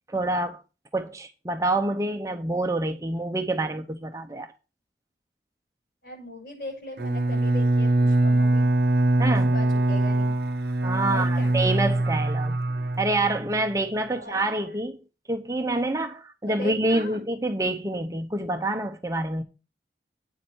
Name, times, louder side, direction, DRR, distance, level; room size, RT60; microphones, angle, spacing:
voice 1, 0.1-0.6 0.9-4.5 9.2-9.6 10.8-12.6 13.0-15.0 15.3-19.4, right 2 dB, 20° right, 0.7 m, -27 dB
voice 2, 6.0-8.7 9.3-10.3 11.1-11.5 14.1-14.8 16.5-17.2, left 1 dB, 55° left, 6.3 m, -39 dB
Bowed string instrument, 7.0-13.6, right 2 dB, 60° right, 0.7 m, -23 dB
9.0 x 7.4 x 4.5 m
head